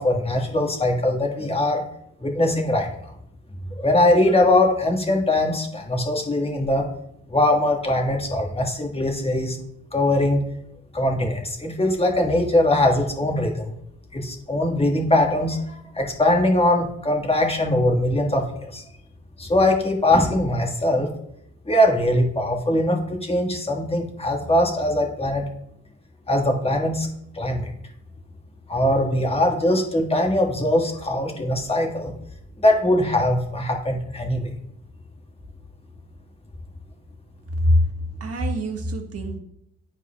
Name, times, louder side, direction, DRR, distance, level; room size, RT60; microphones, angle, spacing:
voice 1, 0.0-1.8 2.2-2.9 3.7-6.9 7.3-9.6 9.9-10.4 10.9-13.7 14.1-18.8 19.4-21.1 21.6-25.4 26.3-27.1 27.3-27.7 28.7-32.1 32.6-34.5, left 1 dB, 20° left, 1 dB, 1.5 m, -21 dB
voice 2, 38.2-39.4, equal, 50° right, 3 dB, 1.4 m, -22 dB
11.0 x 4.7 x 2.3 m, 0.74 s
cardioid pair, 90°, 30 cm